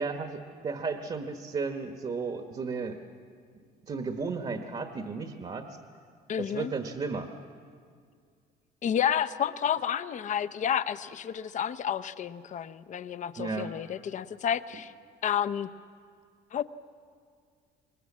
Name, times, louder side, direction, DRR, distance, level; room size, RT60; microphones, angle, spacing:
voice 1, 0.0-3.0 3.9-5.6 6.4-7.3 13.4-13.7, right 4 dB, 35° right, 6 dB, 1.3 m, -34 dB
voice 2, 6.3-6.7 8.8-14.9 15.2-15.7 16.5-16.6, left 9 dB, 45° left, 13 dB, 0.8 m, -30 dB
25.0 x 20.0 x 7.4 m, 2.1 s
cardioid pair, 110°, 17 cm